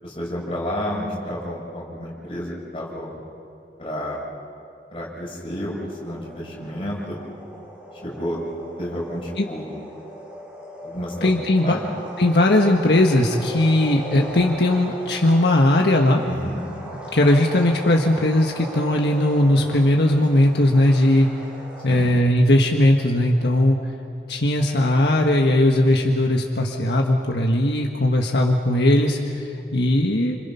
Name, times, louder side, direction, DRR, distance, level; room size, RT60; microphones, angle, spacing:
voice 1, 0.0-3.1 3.8-4.2 4.9-7.2 8.0-8.4 8.8-9.7 10.8-11.3 11.6-11.8 16.2-16.6 21.9-22.1, equal, 30° left, -4 dB, 6.7 m, -30 dB
sound 1, 5.8-22.1, right 1 dB, 5° right, 5.9 m, -38 dB
voice 2, 11.2-11.8 12.2-16.2 17.1-21.3 21.8-23.8 24.3-30.4, left 1 dB, 75° left, 1 dB, 1.5 m, -18 dB
29.5 x 26.0 x 5.8 m, 2.7 s
head